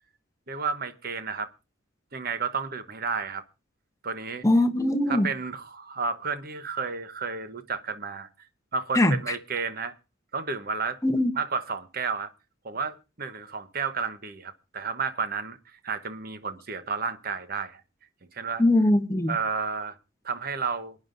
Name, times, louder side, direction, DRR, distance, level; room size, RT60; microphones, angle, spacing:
voice 1, 0.5-1.5 2.1-3.4 4.0-4.4 5.1-8.3 8.7-9.9 10.3-11.0 11.4-12.3 12.6-17.8 18.3-18.6 19.3-20.0 20.2-21.0, right 5 dB, 50° right, 1.0 m, -31 dB
voice 2, 4.4-5.3 8.9-9.2 11.0-11.3 18.6-19.3, left 1 dB, 15° left, 0.9 m, -21 dB
28.0 x 9.5 x 2.6 m
head